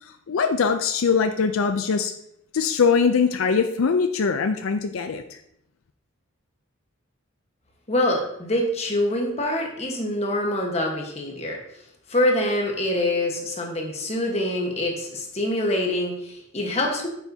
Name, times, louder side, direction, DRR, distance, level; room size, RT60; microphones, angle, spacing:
voice 1, 0.0-2.1 2.5-5.4, left 5 dB, 85° left, 7 dB, 0.5 m, -22 dB
voice 2, 7.9-11.6 12.1-17.1, left 1 dB, 30° left, 1 dB, 1.3 m, -25 dB
8.8 x 7.0 x 2.8 m, 0.77 s
head